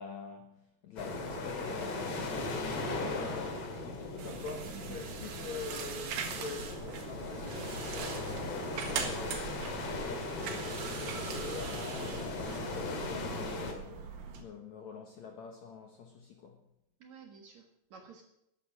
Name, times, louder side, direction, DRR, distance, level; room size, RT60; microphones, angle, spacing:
voice 1, 0.0-10.8 11.3-16.6, left 5 dB, 65° left, 1.9 m, -46 dB
sound 1, 1.0-13.7, left 2 dB, 45° left, 2.4 m, -38 dB
sound 2, 4.2-14.4, right 6 dB, 90° right, 3.8 m, -41 dB
voice 2, 17.0-18.2, right 5 dB, 55° right, 2.3 m, -53 dB
13.5 x 10.0 x 6.4 m
omnidirectional pair, 4.7 m